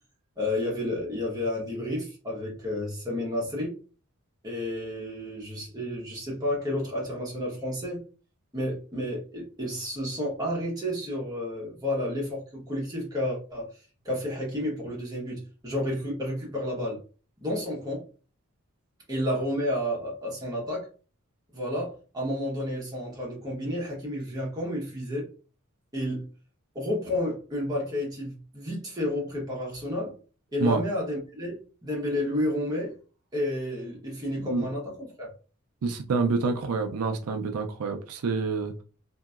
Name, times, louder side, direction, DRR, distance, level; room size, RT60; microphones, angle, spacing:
voice 1, 0.4-3.8 4.4-8.1 8.5-17.0 17.4-18.1 19.1-20.9 21.5-25.3 25.9-26.3 26.7-30.1 30.5-33.0 33.3-35.3, left 1 dB, 20° right, 1.1 m, -31 dB
voice 2, 35.8-38.8, right 4 dB, 85° right, 0.5 m, -27 dB
2.9 x 2.7 x 2.4 m
head